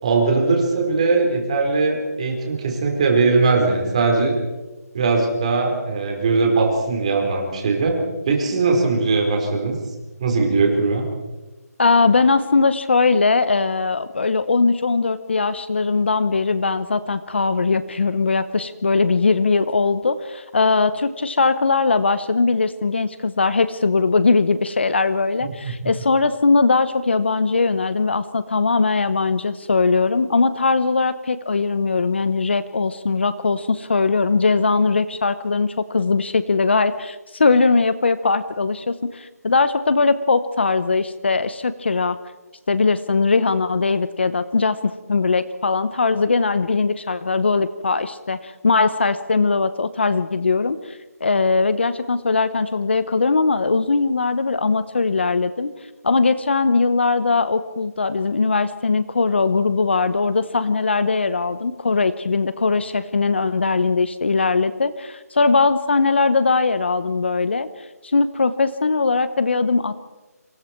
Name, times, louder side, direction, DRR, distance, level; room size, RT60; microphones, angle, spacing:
voice 1, 0.0-4.4 4.9-8.0 8.3-9.7 10.2-11.0 25.6-25.9, right 3 dB, 25° right, 1 dB, 4.3 m, -20 dB
voice 2, 11.8-42.2 42.7-55.7 56.0-67.7 68.0-70.0, left 4 dB, 45° left, 14 dB, 1.0 m, -20 dB
27.0 x 27.0 x 4.6 m, 1.1 s
figure-of-eight pair, 175°, 9 cm